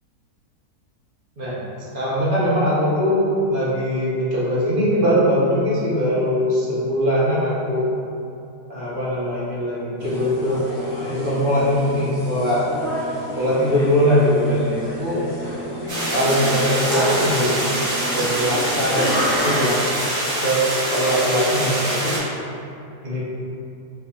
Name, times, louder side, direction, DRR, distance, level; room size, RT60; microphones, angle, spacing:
voice 1, 1.4-7.8 8.7-10.6 11.1-12.6 13.4-15.2 16.1-19.8 20.4-20.6 20.9-22.2 23.0-23.2, equal, 55° right, -8 dB, 0.6 m, -21 dB
sound 1, 10.0-19.8, equal, 60° left, 1.1 m, -29 dB
sound 2, 15.9-22.2, right 1 dB, 75° right, 1.4 m, -24 dB
4.3 x 2.6 x 2.2 m, 2.6 s
omnidirectional pair, 1.7 m